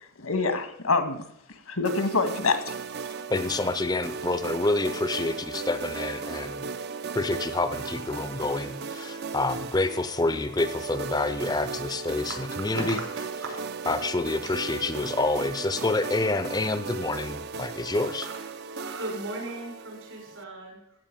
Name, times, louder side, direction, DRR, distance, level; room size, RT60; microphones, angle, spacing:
voice 1, 0.2-1.3 1.7-2.7, left 3 dB, 90° left, 8 dB, 1.7 m, -25 dB
sound 1, 1.8-20.4, right 5 dB, 50° right, 0.5 m, -36 dB
voice 2, 3.3-6.6 7.1-13.0 13.9-18.3, left 2 dB, 20° left, 11 dB, 0.5 m, -28 dB
voice 3, 12.7-13.6 18.2-18.4 18.7-21.0, right 2 dB, 75° right, 0 dB, 6.2 m, -37 dB
15.0 x 5.6 x 8.9 m, 0.75 s
head